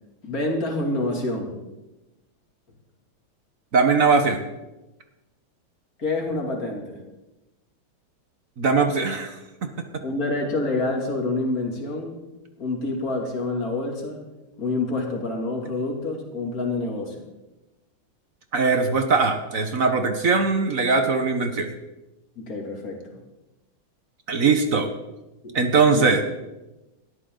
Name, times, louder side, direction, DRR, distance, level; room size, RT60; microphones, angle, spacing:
voice 1, 0.2-1.6 6.0-7.0 10.0-12.2 12.6-14.3 14.6-17.2 22.4-23.0 25.4-25.6 25.9-26.1, left 2 dB, 40° left, 1 dB, 3.0 m, -27 dB
voice 2, 3.7-4.4 8.6-9.4 18.5-21.7 24.3-24.9 25.5-26.2, right 4 dB, 45° right, 7 dB, 1.3 m, -20 dB
18.0 x 13.0 x 3.9 m, 1.0 s
omnidirectional pair, 2.3 m